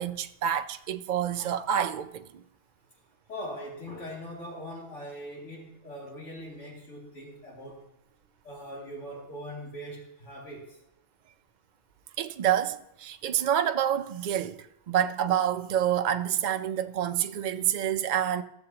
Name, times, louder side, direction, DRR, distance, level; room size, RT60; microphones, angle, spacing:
voice 1, 0.0-2.4 12.2-18.4, right 10 dB, 60° right, 0.5 m, -28 dB
voice 2, 3.3-7.9 8.4-10.8, equal, 90° left, 2.8 m, -41 dB
16.0 x 7.1 x 2.9 m
omnidirectional pair, 1.2 m